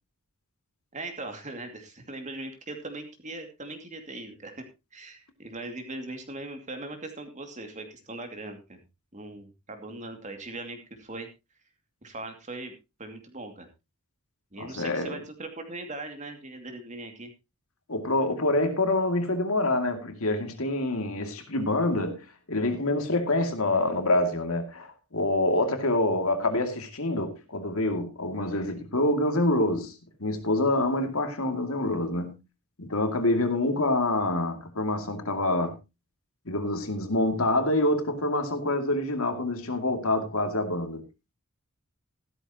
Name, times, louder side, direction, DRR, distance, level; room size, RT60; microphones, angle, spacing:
voice 1, 0.9-4.6 4.9-8.8 9.1-11.3 12.0-12.7 13.0-13.7 14.5-17.3, right 2 dB, 35° right, 2.5 m, -40 dB
voice 2, 14.6-15.2 17.9-32.4 32.8-35.8 36.5-41.0, left 2 dB, 65° left, 2.4 m, -26 dB
14.5 x 13.0 x 2.9 m
head